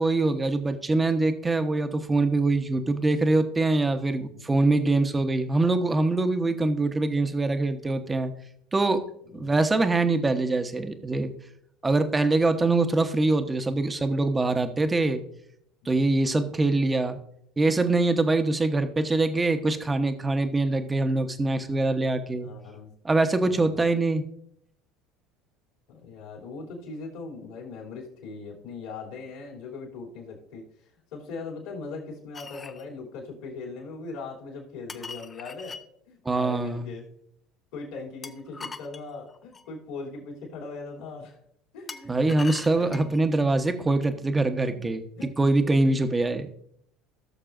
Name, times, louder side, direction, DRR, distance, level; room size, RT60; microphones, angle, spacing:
voice 1, 0.0-8.3 8.7-9.0 9.3-11.3 11.8-15.2 15.9-17.2 17.6-22.5 23.0-24.2 36.2-36.9 42.1-45.0 45.4-46.5, right 2 dB, 20° right, 8 dB, 1.1 m, -24 dB
voice 2, 4.2-4.6 9.3-9.6 14.6-14.9 15.8-16.1 22.4-22.9 23.4-23.9 25.9-35.8 36.1-37.0 37.7-41.4 41.7-43.2 43.8-44.3 44.7-45.3 46.1-46.2, left 4 dB, 65° left, -1 dB, 3.0 m, -40 dB
sound 1, 32.3-32.9 34.9-35.8 38.2-39.7 41.9-43.2, left 4 dB, 25° left, 0.7 m, -41 dB
17.0 x 6.7 x 2.6 m, 0.70 s
hypercardioid pair, 70°, 0 cm